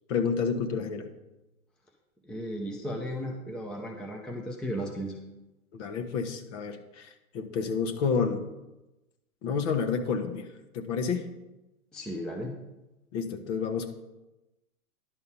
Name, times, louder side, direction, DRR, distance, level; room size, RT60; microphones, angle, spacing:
voice 1, 0.1-1.1 5.7-8.4 9.4-10.5 10.7-11.3 13.1-13.9, left 5 dB, 50° left, 8 dB, 1.4 m, -29 dB
voice 2, 2.2-5.2 11.9-12.5, equal, ahead, 1 dB, 0.6 m, -35 dB
11.0 x 5.5 x 5.5 m, 0.99 s
hypercardioid pair, 120°, 45 cm